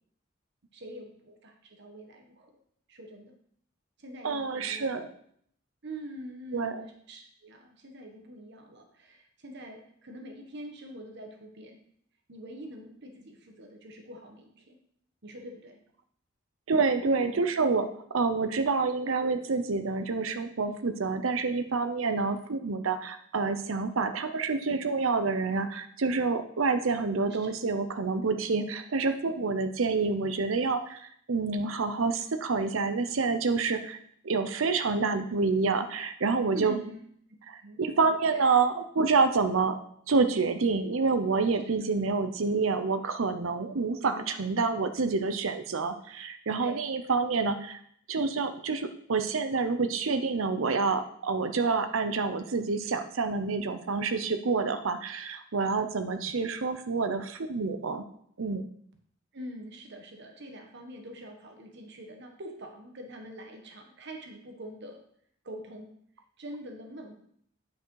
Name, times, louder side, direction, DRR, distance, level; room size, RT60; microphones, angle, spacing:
voice 1, 0.7-2.5 2.9-3.3 4.0-4.9 5.8-11.8 12.3-14.8 15.2-15.8 16.9-17.4 27.4-27.5 36.5-37.0 37.6-37.9 38.3-38.6 44.0-44.4 46.6-46.8 59.3-65.0 65.4-65.9 66.4-67.1, equal, 60° right, 3 dB, 1.3 m, -44 dB
voice 2, 4.2-5.0 6.5-6.7 16.7-34.0 34.2-36.8 37.5-39.8 40.1-47.8 48.1-58.0 58.4-58.6, right 4 dB, 90° right, 8 dB, 0.7 m, -28 dB
9.2 x 5.2 x 4.7 m, 0.66 s
head